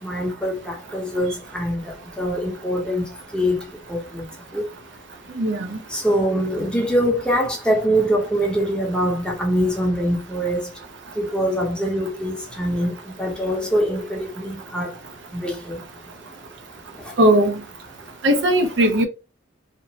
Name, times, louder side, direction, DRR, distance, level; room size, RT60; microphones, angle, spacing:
voice 1, 0.0-4.3 4.5-4.7 5.9-10.7 11.2-12.9 13.2-14.9 15.3-15.8 17.0-17.1, equal, 5° left, 0.7 m, -23 dB
voice 2, 5.4-5.7 17.2-17.5 18.2-19.0, right 1 dB, 65° right, 0.6 m, -17 dB
2.9 x 2.0 x 2.7 m
head